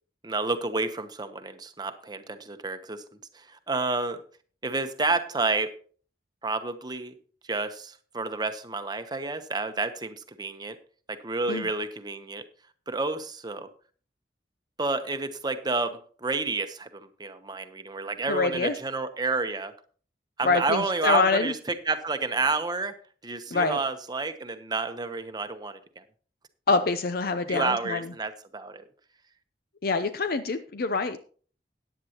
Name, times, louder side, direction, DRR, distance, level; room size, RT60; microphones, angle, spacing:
voice 1, 0.2-3.0 3.3-4.2 4.6-5.7 6.4-7.1 7.5-10.8 11.1-12.4 12.9-13.7 14.8-19.7 20.4-21.6 21.9-22.9 23.2-26.0 27.5-28.8, right 3 dB, 25° right, 9 dB, 0.9 m, -30 dB
voice 2, 18.3-18.7 20.4-21.5 23.5-23.8 26.7-28.1 29.8-31.2, left 4 dB, 60° left, 10 dB, 0.6 m, -25 dB
14.0 x 9.8 x 3.0 m, 0.43 s
head